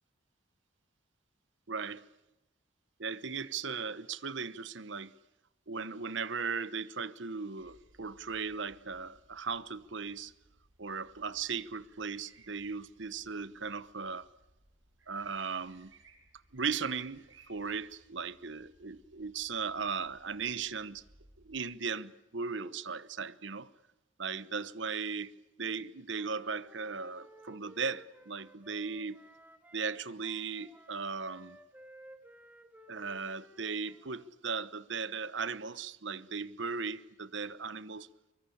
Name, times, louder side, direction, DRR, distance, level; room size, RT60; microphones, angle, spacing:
voice 1, 1.7-2.0 3.0-5.1 5.7-10.3 10.8-14.3 15.1-15.9 16.5-21.0 21.4-23.7 24.2-25.3 25.6-29.2 29.7-31.6 32.9-38.1, right 5 dB, 65° right, 1.0 m, -37 dB
sound 1, 7.6-21.6, right 3 dB, 80° right, 6.9 m, -64 dB
Wind instrument woodwind instrument, 26.1-29.9 30.2-34.3, right 1 dB, 10° right, 2.2 m, -57 dB
24.0 x 23.0 x 8.7 m
head